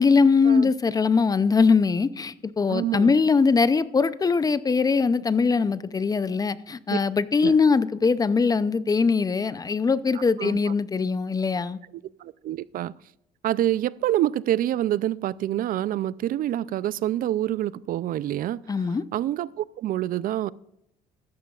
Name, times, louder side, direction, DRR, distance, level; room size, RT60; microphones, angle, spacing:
voice 1, 0.0-11.8 18.7-19.0, left 4 dB, 20° left, 0.5 m, -21 dB
voice 2, 2.7-3.1 6.9-7.0 7.4-7.6 10.4-10.7 11.9-12.9 13.4-20.5, right 13 dB, 55° right, 0.4 m, -27 dB
14.5 x 13.5 x 2.4 m
cardioid pair, 110°, 17 cm